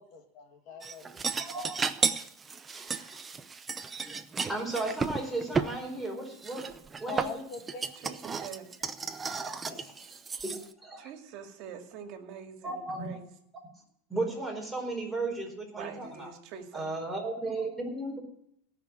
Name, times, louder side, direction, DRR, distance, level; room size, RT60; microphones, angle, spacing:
voice 1, 0.0-1.2 7.1-7.9, left 6 dB, 45° left, 4 dB, 2.4 m, -43 dB
sound 1, 0.8-5.7 6.4-10.7, right 5 dB, 15° right, 0.7 m, -33 dB
voice 2, 1.4-1.7 2.7-3.2 4.3-6.7 7.0-7.3 9.6-9.9 10.4-11.1 12.6-13.1 14.1-16.3 16.7-18.2, right 2 dB, ahead, -2 dB, 4.6 m, -35 dB
voice 3, 8.0-8.8 11.0-13.3 15.8-16.9, right 8 dB, 50° right, 5 dB, 2.2 m, -44 dB
18.0 x 6.0 x 7.4 m, 0.74 s
supercardioid pair, 135°, 0 cm